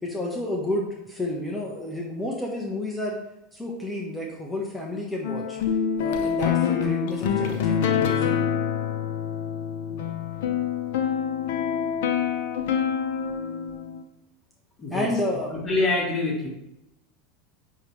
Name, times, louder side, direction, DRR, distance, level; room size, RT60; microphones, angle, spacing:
voice 1, 0.0-3.2 3.5-5.6 6.0-8.4 14.9-15.5, left 1 dB, 5° left, -3 dB, 1.2 m, -31 dB
sound 1, 5.2-14.0, left 7 dB, 70° left, 0.7 m, -26 dB
voice 2, 14.8-15.1 15.5-16.5, left 2 dB, 30° left, -2 dB, 1.8 m, -25 dB
9.4 x 3.2 x 3.4 m, 0.91 s
hypercardioid pair, 95°, 0 cm